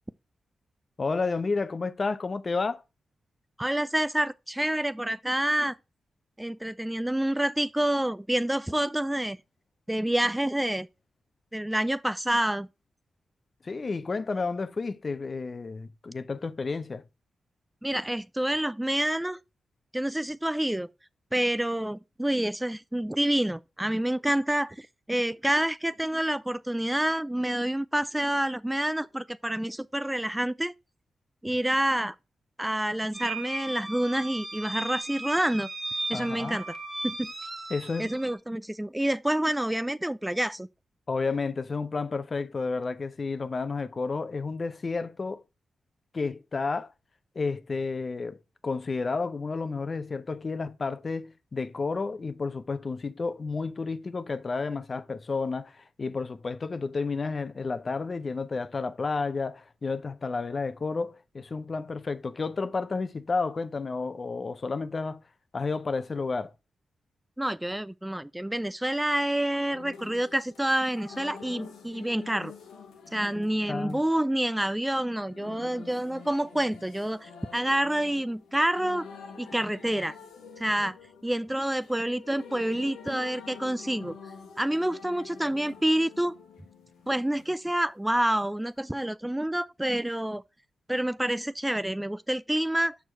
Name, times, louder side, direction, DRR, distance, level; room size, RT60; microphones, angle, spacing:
voice 1, 1.0-2.8 13.6-17.0 36.1-36.5 37.7-38.1 41.1-45.4 46.1-46.9 47.4-65.2 65.5-66.5 73.7-74.0, left 4 dB, 50° left, 0.6 m, -31 dB
voice 2, 3.6-5.8 6.4-9.4 9.9-10.9 11.5-12.7 17.8-19.4 19.9-20.9 21.3-30.7 31.4-32.2 32.6-35.7 36.1-36.7 37.0-37.3 38.0-40.7 67.4-72.5 73.1-79.1 79.4-80.2 80.6-81.0 81.2-84.2 84.6-86.3 87.1-90.4 90.9-93.0, right 1 dB, 10° right, 0.3 m, -28 dB
sound 1, 33.1-38.3, right 2 dB, 35° right, 1.5 m, -36 dB
sound 2, 69.7-87.5 88.8-88.9, left 6 dB, 90° left, 1.2 m, -47 dB
6.3 x 4.7 x 4.5 m
supercardioid pair, 45°, 0 cm